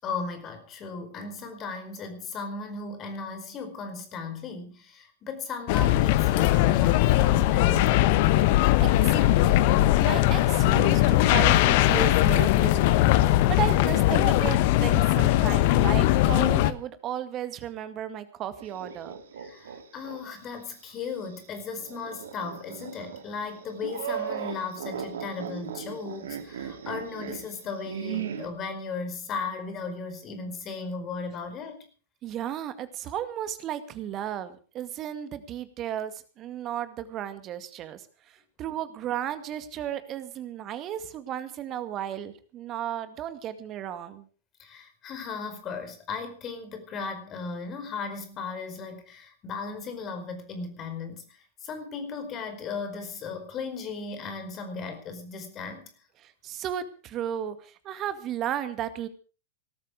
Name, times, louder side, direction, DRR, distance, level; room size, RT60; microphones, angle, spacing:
voice 1, 0.0-8.3 19.4-31.8 44.6-55.9, left 4 dB, 30° left, 8 dB, 4.8 m, -36 dB
sound 1, 5.7-16.7, left 15 dB, 50° left, 1.1 m, -20 dB
voice 2, 8.8-9.6 10.0-19.2 32.2-44.3 56.2-59.1, right 10 dB, 35° right, 11 dB, 2.0 m, -34 dB
sound 2, 18.6-20.2 20.6-20.7 21.8-28.5, right 8 dB, 65° right, 2.4 m, -37 dB
19.0 x 13.0 x 4.9 m, 0.38 s
figure-of-eight pair, 100°, 0 cm